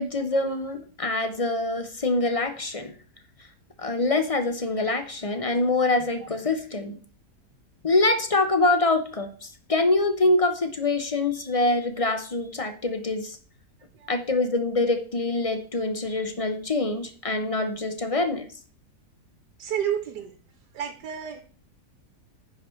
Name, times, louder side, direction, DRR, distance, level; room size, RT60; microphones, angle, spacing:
voice 1, 0.0-2.9 3.8-7.0 7.8-13.4 14.1-18.5, left 2 dB, 30° left, 8 dB, 0.6 m, -25 dB
voice 2, 19.6-20.4 20.7-21.4, right 9 dB, 90° right, 7 dB, 1.5 m, -30 dB
9.7 x 5.1 x 4.4 m, 0.40 s
omnidirectional pair, 1.7 m